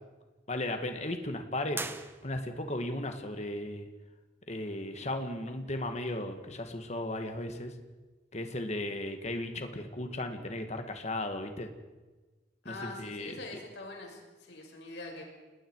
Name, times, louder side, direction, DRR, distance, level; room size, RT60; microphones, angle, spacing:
voice 1, 0.5-1.8 2.2-3.9 4.5-7.7 8.3-11.7 12.7-13.4, left 1 dB, 40° left, 6 dB, 1.9 m, -35 dB
sound 1, 1.7-2.8, right 3 dB, 15° right, 1.0 m, -40 dB
voice 2, 12.6-15.2, left 2 dB, 70° left, 0 dB, 6.3 m, -44 dB
30.0 x 19.5 x 4.8 m, 1.2 s
head